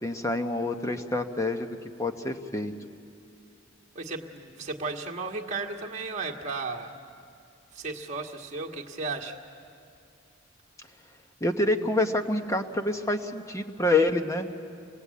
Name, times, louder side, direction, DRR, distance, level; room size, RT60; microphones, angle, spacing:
voice 1, 0.0-1.7 2.0-2.7 11.4-14.5, left 2 dB, 15° left, 6 dB, 1.0 m, -27 dB
voice 2, 3.9-6.9 7.7-9.4, right 3 dB, 35° right, 0 dB, 1.7 m, -34 dB
27.0 x 20.0 x 8.4 m, 2.5 s
head